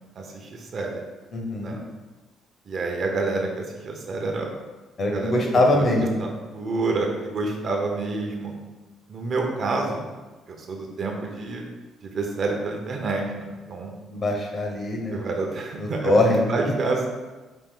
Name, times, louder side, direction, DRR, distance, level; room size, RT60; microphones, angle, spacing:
voice 1, 0.2-1.0 1.6-1.8 2.7-4.5 5.1-5.8 6.2-8.5 9.1-10.1 10.5-11.6 12.0-13.9 15.1-17.1, right 3 dB, 45° right, 1 dB, 0.7 m, -28 dB
voice 2, 1.3-1.8 5.0-6.2 14.1-15.2 15.8-16.4, left 1 dB, 40° left, 1 dB, 0.9 m, -22 dB
5.1 x 2.5 x 3.7 m, 1.2 s
cardioid pair, 115°, 0 cm